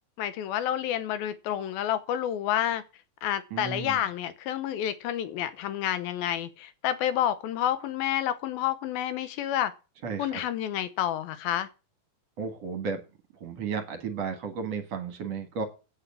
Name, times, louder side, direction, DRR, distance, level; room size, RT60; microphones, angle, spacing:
voice 1, 0.2-2.8 3.2-9.7 10.2-11.7, left 11 dB, 80° left, 14 dB, 2.2 m, -29 dB
voice 2, 3.5-4.0 10.0-10.4 12.4-13.0 13.4-15.6, right 5 dB, 55° right, 7 dB, 1.8 m, -33 dB
9.8 x 9.0 x 7.1 m, 0.32 s
omnidirectional pair, 5.2 m